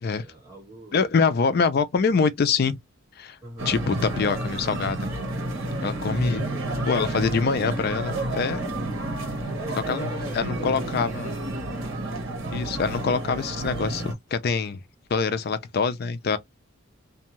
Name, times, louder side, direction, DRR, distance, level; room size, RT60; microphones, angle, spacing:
voice 1, 0.2-1.0 3.4-3.7 6.1-6.7 8.7-9.1 9.6-11.1, right 2 dB, 15° right, 1.3 m, -43 dB
voice 2, 0.9-2.8 3.2-3.4 3.7-5.1 5.8-6.4 6.9-8.6 9.9-11.3 12.5-14.8 15.1-16.4, left 5 dB, 50° left, 0.4 m, -25 dB
sound 1, 3.6-14.1, right 1 dB, 75° right, 1.1 m, -30 dB
2.6 x 2.2 x 2.9 m
head